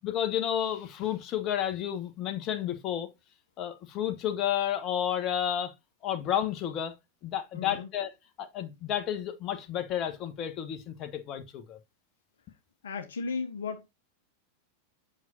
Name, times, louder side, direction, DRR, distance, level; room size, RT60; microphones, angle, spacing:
voice 1, 0.0-3.1 3.6-5.7 6.0-6.9 7.2-8.1 8.4-11.8, left 10 dB, 35° left, 1.2 m, -31 dB
voice 2, 7.5-7.9 12.8-13.9, left 5 dB, 65° left, 0.9 m, -35 dB
7.9 x 6.1 x 2.7 m
figure-of-eight pair, 90°, 0 cm